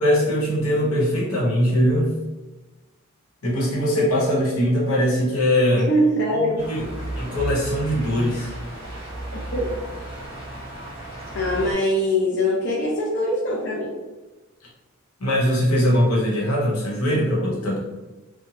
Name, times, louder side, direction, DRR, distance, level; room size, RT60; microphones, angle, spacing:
voice 1, 0.0-2.1 3.4-5.9 6.7-6.8 7.2-8.5 15.2-17.8, equal, 90° left, -5 dB, 0.9 m, -21 dB
voice 2, 5.7-6.7 9.3-9.7 11.3-13.9, equal, 55° left, -4 dB, 0.4 m, -22 dB
sound 1, 6.6-11.7, right 1 dB, 25° right, 1.1 m, -34 dB
2.9 x 2.1 x 2.7 m, 1.2 s
head